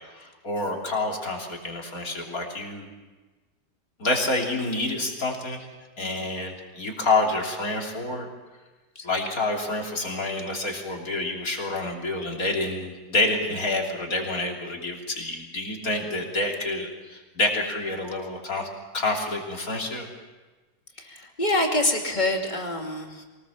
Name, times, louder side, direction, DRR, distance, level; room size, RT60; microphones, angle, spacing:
voice 1, 0.1-2.9 4.0-5.7 6.0-8.3 9.0-18.7 18.9-20.1, left 2 dB, 55° left, 0 dB, 3.6 m, -28 dB
voice 2, 21.0-23.2, left 1 dB, 25° left, 2 dB, 2.7 m, -26 dB
23.5 x 19.5 x 7.1 m, 1.3 s
omnidirectional pair, 1.8 m